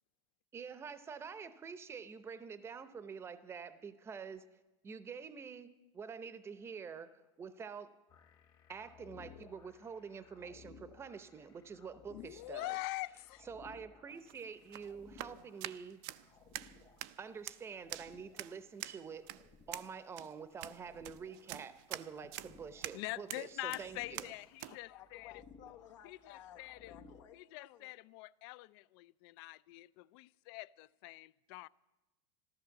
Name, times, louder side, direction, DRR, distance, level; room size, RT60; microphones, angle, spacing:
voice 1, 0.5-4.5 4.8-7.9 8.7-12.8 13.5-16.0 17.2-19.3 19.7-24.3, right 6 dB, 15° right, 0.7 m, -47 dB
sound 1, 8.1-27.2, left 5 dB, 30° left, 1.1 m, -60 dB
voice 2, 12.1-13.5 22.9-25.4 26.0-26.9 27.3-31.7, left 21 dB, 55° left, 0.4 m, -44 dB
sound 2, 14.1-24.8, right 16 dB, 50° right, 0.5 m, -47 dB
voice 3, 24.9-26.6 26.9-27.9, left 11 dB, 85° left, 1.3 m, -56 dB
14.0 x 13.0 x 7.0 m
supercardioid pair, 155°, 15 cm